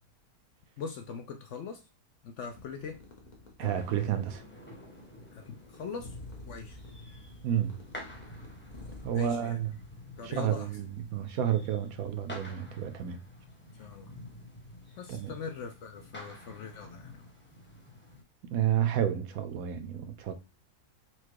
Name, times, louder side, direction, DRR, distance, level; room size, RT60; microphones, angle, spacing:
voice 1, 0.8-1.8 2.2-3.0 5.3-6.2 6.5-6.8 9.1-9.6 10.2-10.7 13.8-14.1 15.0-17.3, left 6 dB, 65° left, 0.7 m, -41 dB
sound 1, 2.4-9.4, left 2 dB, 35° left, 0.9 m, -50 dB
sound 2, 3.6-18.2, left 1 dB, 10° left, 1.0 m, -49 dB
voice 2, 3.6-4.4 7.4-7.8 9.0-9.8 10.2-13.2 15.1-15.3 18.5-20.3, right 10 dB, 75° right, 1.0 m, -30 dB
4.4 x 2.3 x 4.5 m
omnidirectional pair, 1.6 m